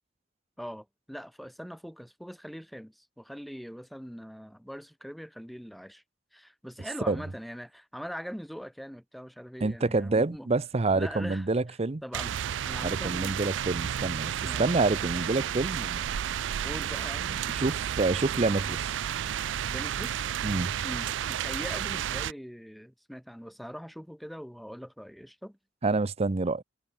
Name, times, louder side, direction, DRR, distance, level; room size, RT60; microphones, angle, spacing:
voice 1, 0.6-6.0 6.3-10.5 10.9-13.5 14.4-14.7 16.6-17.4 19.7-20.2 20.8-25.6, equal, ahead, 2.2 m, -42 dB
voice 2, 9.6-12.0 12.8-14.3 14.6-16.0 17.5-18.9 20.4-20.7 25.8-26.6, right 3 dB, 35° right, 0.6 m, -27 dB
sound 1, 12.1-22.3, right 9 dB, 80° right, 0.4 m, -32 dB
head